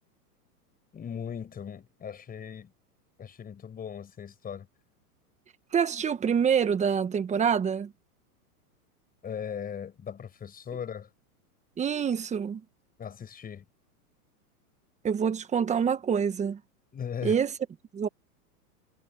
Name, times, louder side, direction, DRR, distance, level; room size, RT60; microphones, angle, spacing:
voice 1, 0.9-2.7 3.2-4.7 9.2-11.1 13.0-13.6 16.9-17.4, left 8 dB, 20° left, 6.4 m, -38 dB
voice 2, 5.7-7.9 11.8-12.6 15.0-16.6 17.2-17.5 17.9-18.1, right 7 dB, 15° right, 1.4 m, -26 dB
hypercardioid pair, 135°, 46 cm